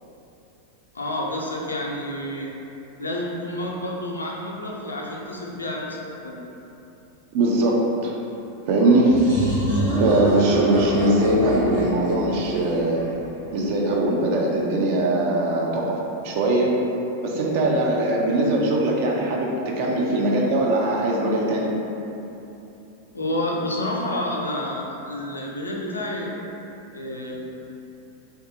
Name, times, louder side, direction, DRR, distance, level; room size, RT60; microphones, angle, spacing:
voice 1, 0.9-2.5 3.0-6.4 23.1-26.3 26.9-27.6, left 1 dB, 75° left, -2 dB, 0.4 m, -29 dB
voice 2, 7.3-8.1 8.7-9.6 10.0-13.0 13.5-16.8 17.2-21.7, right 1 dB, 45° right, -2 dB, 0.4 m, -21 dB
sound 1, 9.1-13.7, right 1 dB, 90° right, 1.4 m, -27 dB
2.6 x 2.3 x 2.7 m, 2.9 s
figure-of-eight pair, 90°, 0 cm